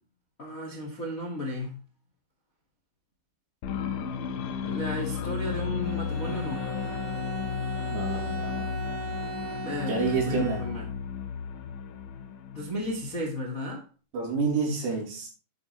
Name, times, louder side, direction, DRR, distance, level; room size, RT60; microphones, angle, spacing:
voice 1, 0.4-1.8 4.6-6.7 9.6-10.9 12.5-13.8, left 1 dB, 30° left, 1.5 m, -34 dB
sound 1, 3.6-13.2, left 7 dB, 70° left, 2.1 m, -34 dB
Bowed string instrument, 5.8-11.1, right 4 dB, 55° right, 5.4 m, -39 dB
voice 2, 7.9-8.7 9.9-10.7 14.1-15.3, right 4 dB, 75° right, 6.0 m, -29 dB
10.5 x 9.6 x 3.3 m
omnidirectional pair, 5.0 m